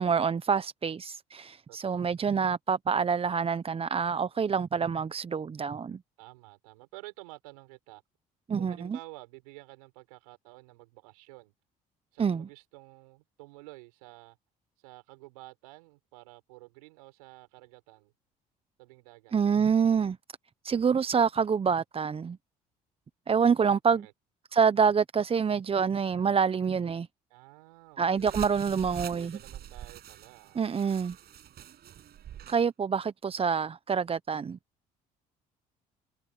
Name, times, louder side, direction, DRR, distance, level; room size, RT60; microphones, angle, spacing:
voice 1, 0.0-6.0 8.5-9.0 12.2-12.4 19.3-20.2 20.6-22.4 23.3-24.1 24.5-27.1 28.0-29.4 30.5-31.2 32.5-34.6, right 6 dB, 30° right, 0.8 m, -27 dB
voice 2, 1.7-2.1 6.2-8.0 8.6-11.5 12.1-14.4 14.8-18.1 18.8-19.4 23.9-24.1 27.3-28.6 29.1-30.7, right 23 dB, 85° right, 6.0 m, -51 dB
sound 1, 28.2-32.6, right 11 dB, 60° right, 6.5 m, -45 dB
hypercardioid pair, 65°, 19 cm